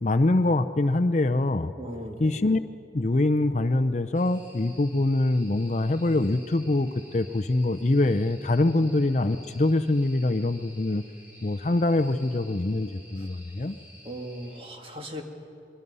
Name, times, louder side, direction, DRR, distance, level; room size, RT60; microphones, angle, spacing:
voice 1, 0.0-1.7 2.2-2.6 2.9-11.0 11.4-13.8, left 2 dB, 40° left, 9 dB, 0.6 m, -24 dB
voice 2, 1.8-2.4 8.8-8.9 13.2-13.3 14.0-15.2, equal, 30° right, 2 dB, 2.1 m, -38 dB
sound 1, 4.1-14.6, equal, 10° right, 5.8 m, -52 dB
24.5 x 23.0 x 5.5 m, 2.7 s
head